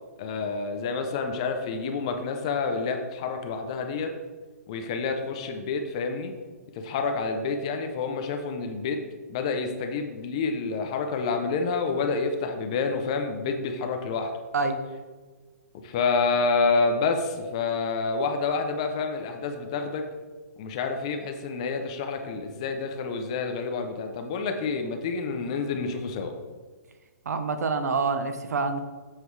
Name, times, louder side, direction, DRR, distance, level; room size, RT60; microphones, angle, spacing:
voice 1, 0.2-4.1 4.7-6.3 6.8-9.0 9.3-14.3 15.8-20.0 20.6-26.3, left 4 dB, 20° left, 5 dB, 0.5 m, -28 dB
voice 2, 27.3-28.8, right 4 dB, 70° right, 9 dB, 0.9 m, -26 dB
8.0 x 7.3 x 3.2 m, 1.4 s
hypercardioid pair, 175°, 9 cm